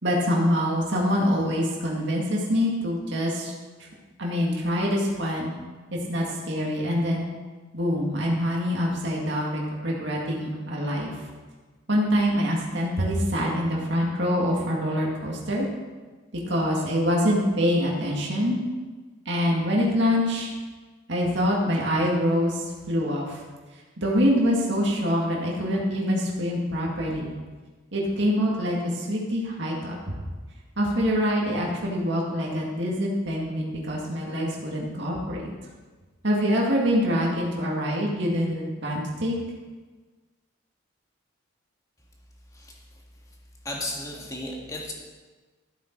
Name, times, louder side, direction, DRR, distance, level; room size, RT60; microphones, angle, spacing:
voice 1, 0.0-3.5 4.2-5.5 6.1-7.2 7.7-11.1 11.9-15.7 16.5-18.6 19.3-20.5 21.1-23.4 24.0-27.3 27.9-30.0 30.8-35.4 36.2-39.4, equal, 60° right, -3 dB, 2.1 m, -25 dB
voice 2, 43.6-44.9, left 1 dB, 15° left, -2 dB, 1.9 m, -34 dB
13.5 x 8.0 x 4.6 m, 1.3 s
head